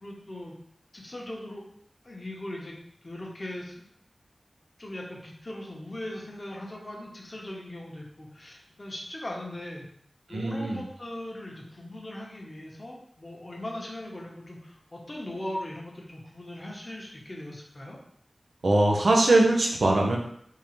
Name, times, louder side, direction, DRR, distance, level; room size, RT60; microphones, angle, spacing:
voice 1, 0.0-0.5 0.9-1.6 2.0-2.8 3.0-3.8 4.8-9.9 10.3-18.0, left 1 dB, 35° left, -2 dB, 0.9 m, -39 dB
voice 2, 10.3-10.8 18.6-20.2, right 2 dB, 85° right, 0 dB, 0.7 m, -21 dB
3.7 x 2.6 x 3.1 m, 0.67 s
wide cardioid pair, 75°, 0 cm